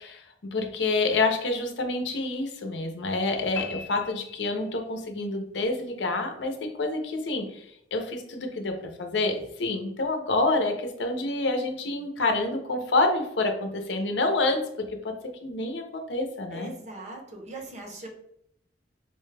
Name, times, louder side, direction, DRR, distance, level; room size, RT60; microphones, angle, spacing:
voice 1, 0.0-14.6 15.0-16.7, left 2 dB, 75° left, 4 dB, 0.6 m, -28 dB
sound 1, 3.6-5.1, left 5 dB, 15° left, 0.6 m, -39 dB
voice 2, 16.5-18.1, right 1 dB, 40° right, 1 dB, 0.8 m, -40 dB
4.3 x 2.2 x 3.2 m, 0.74 s
head